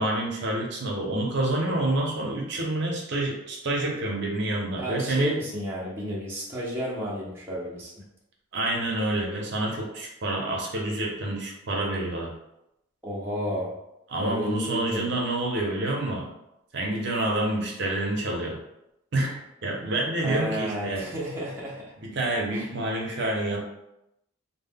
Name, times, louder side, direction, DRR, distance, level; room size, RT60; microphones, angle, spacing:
voice 1, 0.0-5.4 8.5-12.3 14.1-16.3 16.7-18.6 19.1-21.1 22.0-23.6, right 1 dB, 60° right, -1 dB, 0.5 m, -28 dB
voice 2, 4.8-8.0 13.0-13.7 14.2-15.1 20.2-21.8 22.5-22.7, equal, 10° right, -6 dB, 0.5 m, -32 dB
2.1 x 2.0 x 3.4 m, 0.85 s
head